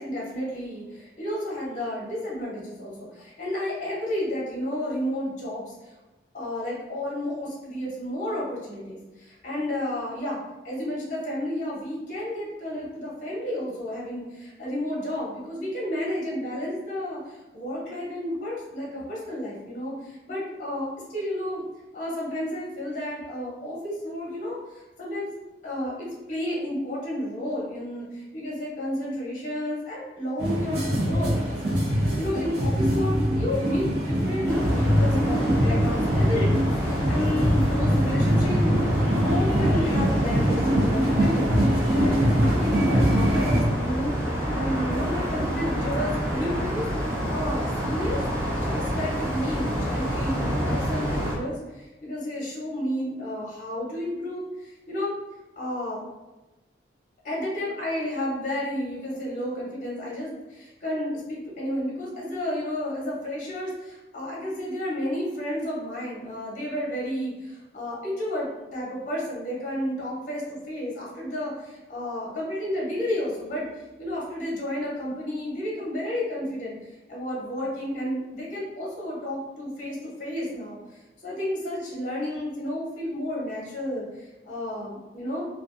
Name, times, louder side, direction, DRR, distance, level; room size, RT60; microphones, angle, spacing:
voice 1, 0.0-5.9 6.3-10.4 10.6-21.7 21.9-25.3 25.6-38.9 39.2-46.9 47.3-48.2 48.6-55.1 55.6-56.0 57.2-76.8 77.1-85.5, left 1 dB, 45° left, -5 dB, 0.7 m, -31 dB
sound 1, 30.4-43.6, equal, 65° right, 0.7 m, -23 dB
sound 2, 34.5-51.4, equal, 15° right, 0.5 m, -28 dB
2.5 x 2.2 x 2.4 m, 1.1 s
head